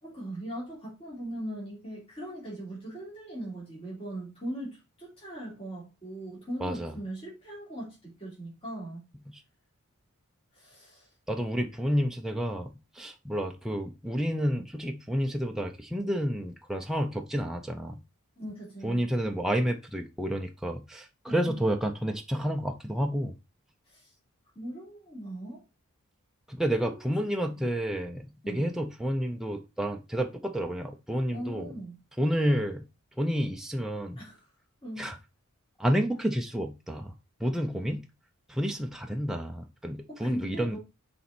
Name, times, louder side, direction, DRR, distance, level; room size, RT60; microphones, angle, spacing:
voice 1, 0.0-9.1 10.5-11.1 18.4-19.0 21.2-21.6 23.9-24.1 24.5-25.6 26.9-27.0 27.6-27.7 28.4-28.7 31.3-32.0 34.2-34.5 34.8-35.1 40.1-40.8, right 1 dB, 25° left, 3.3 m, -39 dB
voice 2, 6.6-6.9 11.3-12.7 13.0-18.0 18.8-23.3 26.5-31.7 32.2-32.8 33.2-34.2 35.0-35.1 35.8-37.1 37.4-38.0 38.5-40.8, equal, ahead, 0.6 m, -30 dB
6.8 x 4.3 x 4.3 m
head